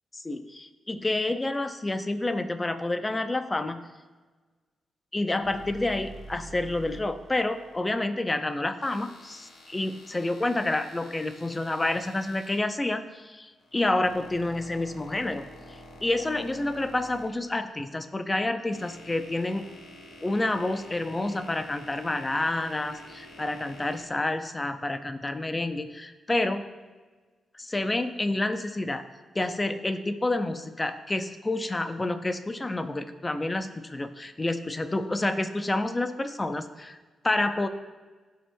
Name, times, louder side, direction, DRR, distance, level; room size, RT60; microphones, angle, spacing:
voice 1, 0.1-3.8 5.1-15.4 15.7-19.7 20.2-26.7 27.6-29.0 29.3-37.0 37.2-37.7, left 2 dB, 20° left, 9 dB, 0.6 m, -29 dB
sound 1, 5.4-7.8 8.8-12.6 13.6-17.9 18.5-24.0, equal, 85° left, 1.1 m, -48 dB
12.5 x 4.6 x 2.2 m, 1.3 s
cardioid pair, 80°, 0 cm